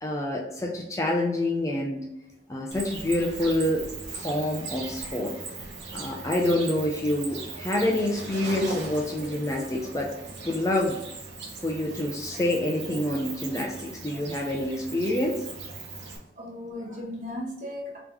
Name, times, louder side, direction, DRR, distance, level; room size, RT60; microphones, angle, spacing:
voice 1, 0.0-2.1 2.5-3.9 4.2-5.3 5.9-10.1 10.4-11.0 11.6-15.5, left 1 dB, 20° left, 0 dB, 0.4 m, -27 dB
Cricket, 2.7-16.2, right 3 dB, 85° right, 0.8 m, -39 dB
voice 2, 16.4-18.0, left 1 dB, 45° right, -3 dB, 1.2 m, -36 dB
3.6 x 3.0 x 3.4 m, 0.88 s
head